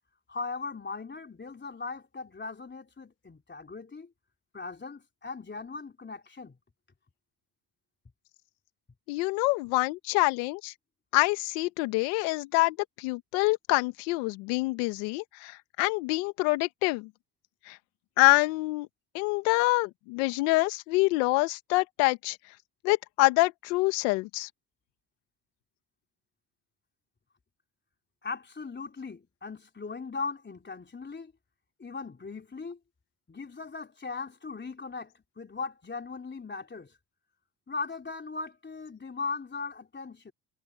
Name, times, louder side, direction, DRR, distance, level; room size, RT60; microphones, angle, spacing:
voice 1, 0.3-4.1 4.5-6.6 28.2-31.3 31.8-32.8 33.3-36.9 37.7-40.3, left 4 dB, 20° left, 3.8 m, -38 dB
voice 2, 9.1-10.7 11.1-17.1 17.7-17.8 18.2-18.9 19.1-22.4 22.8-24.5, left 23 dB, 90° left, 1.6 m, -26 dB
supercardioid pair, 85°, 48 cm